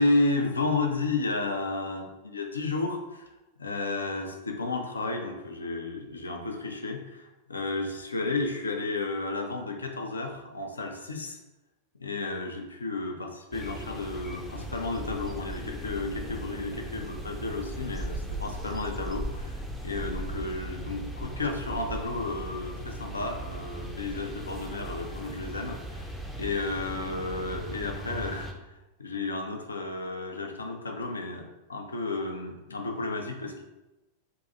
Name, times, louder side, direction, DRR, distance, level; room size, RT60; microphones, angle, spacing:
voice 1, 0.0-3.2 3.6-11.4 12.0-26.1 26.4-28.5 29.0-33.6, left 3 dB, 75° left, 3 dB, 0.4 m, -32 dB
sound 1, 13.5-28.5, right 1 dB, ahead, 0.4 m, -38 dB
2.6 x 2.3 x 3.9 m, 1.0 s
figure-of-eight pair, 90°, 0 cm